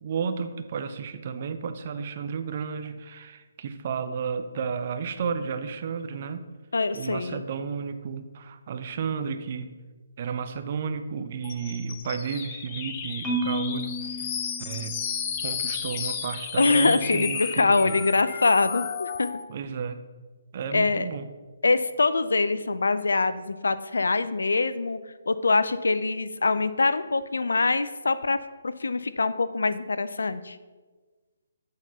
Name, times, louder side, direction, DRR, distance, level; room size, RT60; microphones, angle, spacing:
voice 1, 0.0-6.4 6.9-9.7 10.2-14.3 14.6-15.0 15.4-18.0 19.5-20.0 20.5-21.3, right 6 dB, 45° right, 9 dB, 0.6 m, -32 dB
voice 2, 6.7-7.4 16.6-19.3 20.7-21.1 21.6-25.0 25.3-28.4 28.6-30.6, left 3 dB, 75° left, 14 dB, 0.4 m, -24 dB
sound 1, 11.4-19.4, left 7 dB, 30° left, 0.7 m, -33 dB
Marimba xylophone, 13.2-15.4, equal, 10° right, 1.5 m, -33 dB
8.1 x 4.2 x 5.3 m, 1.4 s
figure-of-eight pair, 145°, 0 cm